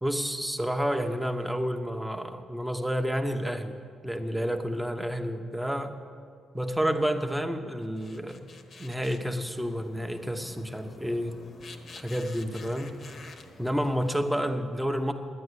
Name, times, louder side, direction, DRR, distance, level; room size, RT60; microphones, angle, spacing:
voice 1, 0.0-3.8 4.0-6.0 6.5-8.5 8.8-11.4 12.0-13.0 13.6-15.1, equal, 5° right, 5 dB, 1.0 m, -30 dB
sound 1, 7.8-14.4, left 3 dB, 50° left, 1.1 m, -49 dB
11.0 x 9.0 x 8.1 m, 2.2 s
cardioid pair, 90°, 0 cm